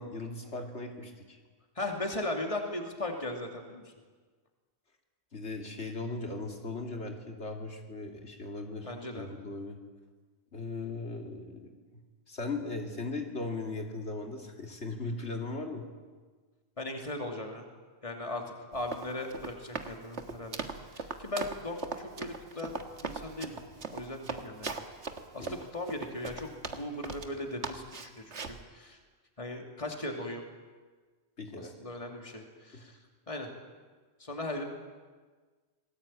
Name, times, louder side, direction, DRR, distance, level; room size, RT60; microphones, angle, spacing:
voice 1, 0.0-1.4 5.3-9.8 10.5-11.7 12.3-15.8 25.4-25.6 31.4-31.7 32.7-32.8, left 3 dB, 80° left, 3 dB, 3.1 m, -38 dB
voice 2, 1.8-3.8 8.8-9.3 16.8-17.7 18.0-18.4 18.7-20.7 20.9-23.6 23.9-24.8 25.3-29.0 29.4-30.4 31.6-33.0 33.3-33.5 34.2-34.6, left 1 dB, 30° left, 3 dB, 2.9 m, -38 dB
Run, 18.7-27.3 27.6-28.6, right 4 dB, 90° right, 2.0 m, -39 dB
27.5 x 20.0 x 8.9 m, 1.4 s
omnidirectional pair, 1.1 m